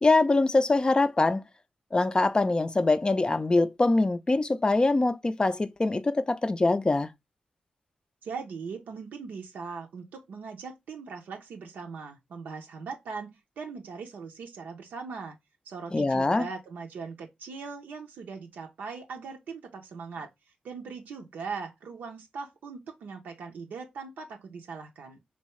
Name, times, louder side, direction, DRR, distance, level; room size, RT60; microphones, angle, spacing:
voice 1, 0.0-1.4 1.9-7.1 15.9-16.5, left 2 dB, 30° left, 0.4 m, -23 dB
voice 2, 8.2-15.4 15.7-20.3 20.6-25.2, right 5 dB, 90° right, 0.5 m, -40 dB
3.2 x 2.7 x 3.0 m
cardioid pair, 50°, 3 cm